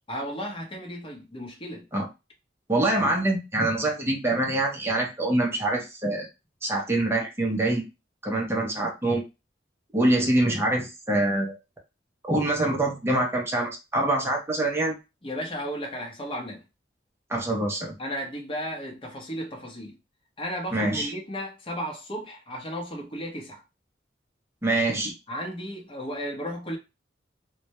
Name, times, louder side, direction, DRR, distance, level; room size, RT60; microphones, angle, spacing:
voice 1, 0.1-1.9 3.0-3.1 15.2-16.6 18.0-20.0 20.4-23.6 25.3-26.8, equal, 30° left, 0.8 m, -34 dB
voice 2, 2.7-6.3 6.6-7.8 8.2-9.2 9.9-11.6 12.3-15.0 17.3-17.9 20.7-21.1 24.6-25.1, right 1 dB, 15° right, 0.6 m, -25 dB
2.2 x 2.1 x 2.8 m
head